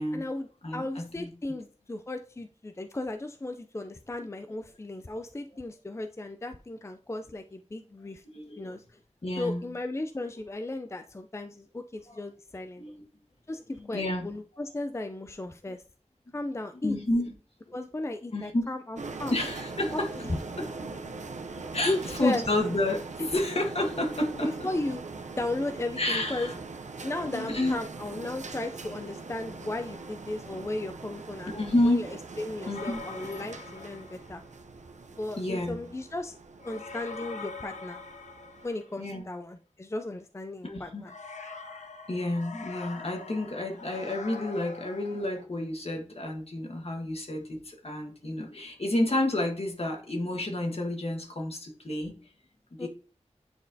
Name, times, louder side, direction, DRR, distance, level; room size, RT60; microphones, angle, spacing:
voice 1, 0.1-0.5 0.7-8.2 8.6-8.8 9.4-12.8 13.5-15.8 16.3-17.0 17.7-19.3 21.9-22.4 23.2-23.3 24.4-25.0 25.4-26.5 27.0-34.4 35.2-36.4 36.6-38.0 38.6-41.1 52.8-52.9, left 2 dB, 25° left, 7 dB, 0.4 m, -35 dB
voice 2, 0.6-1.3 8.3-8.7 9.2-9.7 12.1-12.2 12.8-13.0 13.8-14.3 16.8-17.3 17.7-17.8 18.3-18.7 19.3-21.2 21.5-24.7 26.0-26.6 27.0-27.8 31.5-32.1 32.7-33.0 35.4-35.8 39.0-39.2 40.6-41.0 42.1-52.1 52.8-52.9, left 1 dB, 55° left, 2 dB, 1.5 m, -30 dB
sound 1, 19.0-38.7, right 3 dB, 85° right, 0.6 m, -42 dB
sound 2, 32.7-34.5 36.6-39.1 41.0-45.4, left 4 dB, 85° left, 0.6 m, -43 dB
9.3 x 4.2 x 2.7 m, 0.40 s
wide cardioid pair, 65°, 12 cm